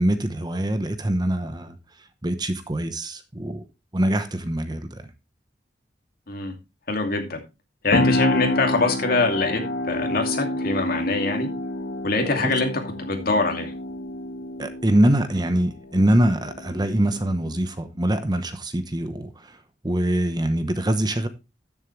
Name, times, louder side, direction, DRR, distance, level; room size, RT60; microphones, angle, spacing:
voice 1, 0.0-1.8 2.2-3.6 3.9-5.1 12.4-12.5 14.6-19.6 19.8-21.3, right 1 dB, 25° right, 0.9 m, -23 dB
voice 2, 6.9-7.4 7.8-11.5 12.0-13.7, left 3 dB, 55° left, 2.5 m, -24 dB
sound 1, 7.9-17.6, left 1 dB, 85° left, 1.4 m, -28 dB
13.0 x 7.3 x 3.2 m
head